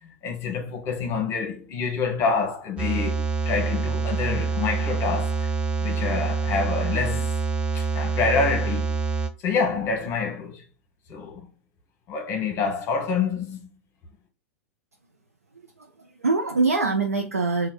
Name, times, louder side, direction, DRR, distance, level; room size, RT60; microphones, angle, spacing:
voice 1, 0.0-5.5 5.8-7.3 7.7-9.0 9.4-10.6 11.1-11.4 12.1-13.7, left 5 dB, 35° left, 1.0 m, -27 dB
sound 1, 2.8-9.3, right 5 dB, 15° right, 0.5 m, -26 dB
voice 2, 15.8-17.7, right 3 dB, 85° right, 0.6 m, -24 dB
3.4 x 2.3 x 4.4 m
figure-of-eight pair, 95°, 8 cm